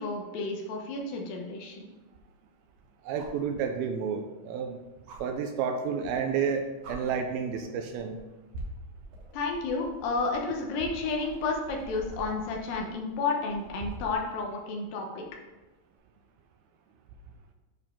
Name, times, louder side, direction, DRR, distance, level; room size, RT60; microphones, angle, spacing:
voice 1, 0.0-1.9 9.3-15.2, left 3 dB, 70° left, 1 dB, 2.5 m, -31 dB
sound 1, 0.9-1.0 3.2-3.5 5.1-5.2 6.3-6.5 6.8-7.0 7.9-8.2 8.5-14.2 15.9-16.0, right 2 dB, 60° right, 2.1 m, -44 dB
voice 2, 3.0-4.8 5.2-8.2, right 6 dB, 80° right, 5 dB, 2.3 m, -30 dB
9.8 x 4.5 x 3.6 m, 1.1 s
omnidirectional pair, 4.5 m